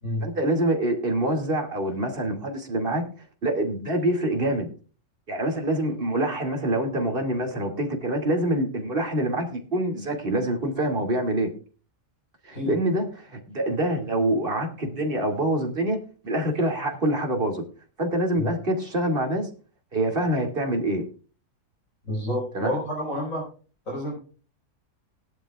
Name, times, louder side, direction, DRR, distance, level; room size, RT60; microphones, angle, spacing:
voice 1, 0.2-3.0 3.4-4.7 5.3-11.5 12.4-17.6 18.0-19.5 19.9-21.0 22.5-22.8, right 1 dB, 35° right, 3 dB, 2.7 m, -25 dB
voice 2, 22.1-23.4 23.9-24.1, equal, 60° left, -2 dB, 5.5 m, -29 dB
19.0 x 11.5 x 2.4 m, 0.37 s
omnidirectional pair, 1.6 m